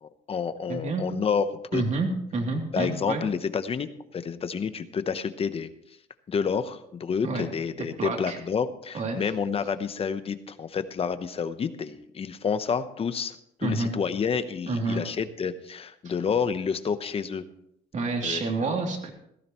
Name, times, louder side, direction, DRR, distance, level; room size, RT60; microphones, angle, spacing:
voice 1, 0.0-1.5 1.7-1.8 2.7-5.7 6.3-17.4 18.2-18.8, left 6 dB, 35° left, 11 dB, 0.9 m, -29 dB
voice 2, 0.7-1.1 1.7-3.2 7.2-7.5 8.0-8.4 8.9-9.2 13.6-13.9 14.7-15.0 17.9-19.1, right 3 dB, 45° right, 2 dB, 2.9 m, -28 dB
17.0 x 14.0 x 3.1 m, 0.74 s
cardioid pair, 110°, 17 cm